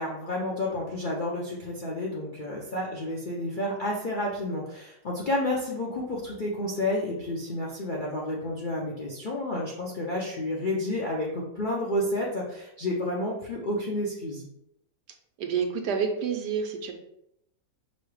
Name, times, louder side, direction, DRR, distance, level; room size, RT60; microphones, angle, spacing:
voice 1, 0.0-14.5, left 1 dB, 60° left, -4 dB, 0.5 m, -30 dB
voice 2, 15.4-16.9, right 6 dB, 80° right, 4 dB, 1.3 m, -28 dB
5.3 x 2.1 x 4.7 m, 0.80 s
omnidirectional pair, 1.8 m